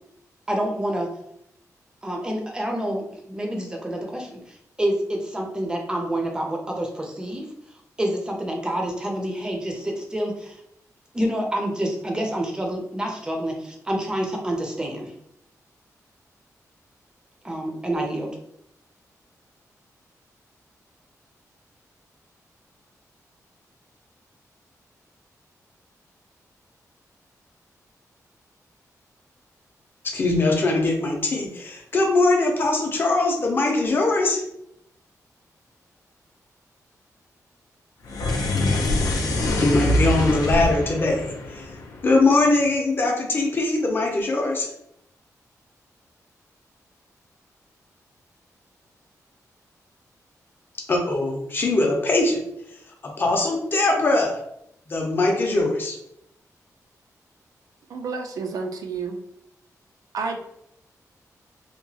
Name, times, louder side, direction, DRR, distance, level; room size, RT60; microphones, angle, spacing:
voice 1, 0.5-1.1 2.0-7.5 8.0-10.6 11.1-15.1 17.4-18.4, right 1 dB, 15° right, 1 dB, 0.5 m, -28 dB
voice 2, 30.1-34.4 39.6-41.6 42.0-44.7 50.9-52.4 53.0-54.4 54.9-56.0, left 2 dB, 35° left, 0 dB, 0.6 m, -21 dB
sound 1, 38.0-42.5, left 1 dB, 85° left, 0.4 m, -24 dB
voice 3, 57.9-59.2 60.1-60.4, right 4 dB, 80° right, 5 dB, 0.4 m, -30 dB
2.8 x 2.2 x 2.7 m, 0.76 s
wide cardioid pair, 170°, 6 cm